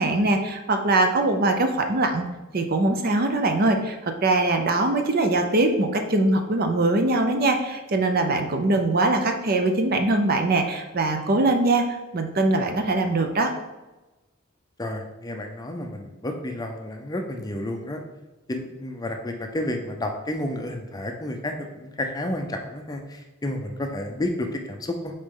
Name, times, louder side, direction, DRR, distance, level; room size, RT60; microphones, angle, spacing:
voice 1, 0.0-2.2 2.5-11.9 12.1-13.5, right 2 dB, 45° right, 5 dB, 0.6 m, -22 dB
voice 2, 14.8-18.0 18.5-25.1, left 1 dB, 20° left, 4 dB, 0.5 m, -31 dB
6.5 x 4.1 x 3.8 m, 1.1 s
head